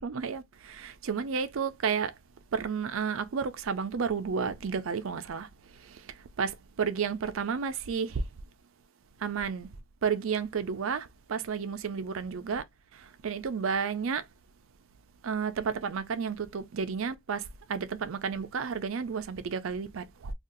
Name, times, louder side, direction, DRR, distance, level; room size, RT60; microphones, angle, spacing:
voice 1, 0.0-2.1 2.5-5.5 5.8-8.2 9.2-9.7 10.0-12.6 12.9-14.2 15.2-20.3, right 6 dB, 85° right, 0.5 m, -32 dB
2.6 x 2.4 x 3.7 m
head